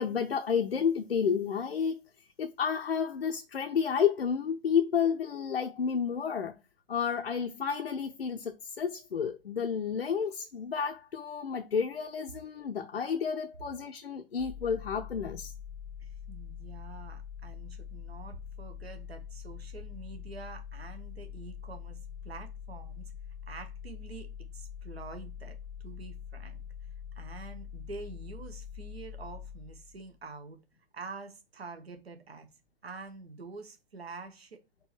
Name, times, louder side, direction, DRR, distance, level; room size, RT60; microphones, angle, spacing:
voice 1, 0.0-2.0 2.4-6.6 6.9-15.5, left 7 dB, 90° left, 0.5 m, -31 dB
sound 1, 14.4-30.2, left 8 dB, 20° left, 0.5 m, -44 dB
voice 2, 16.0-23.1 23.5-25.6 25.8-26.6 27.1-30.6 30.9-32.5 32.8-34.6, right 4 dB, 85° right, 0.8 m, -46 dB
4.5 x 2.7 x 3.1 m
figure-of-eight pair, 110°, 30 cm